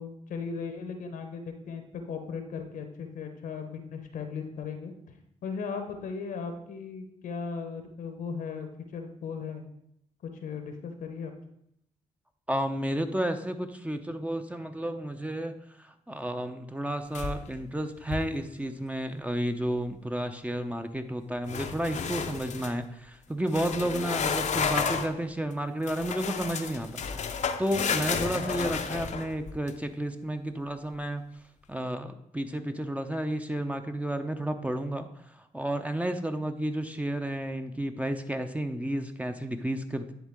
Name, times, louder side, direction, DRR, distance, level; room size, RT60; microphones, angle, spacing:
voice 1, 0.0-4.9 5.4-9.6 10.2-11.3, left 5 dB, 75° left, 6 dB, 1.0 m, -37 dB
voice 2, 12.5-31.2 31.7-40.1, right 1 dB, 10° right, 7 dB, 0.7 m, -32 dB
sound 1, 17.1-17.6 18.0-18.4 21.5-22.8 23.5-25.2 25.9-29.7, left 6 dB, 60° left, 0.6 m, -32 dB
10.5 x 3.7 x 3.6 m, 0.75 s
supercardioid pair, 55°, 14 cm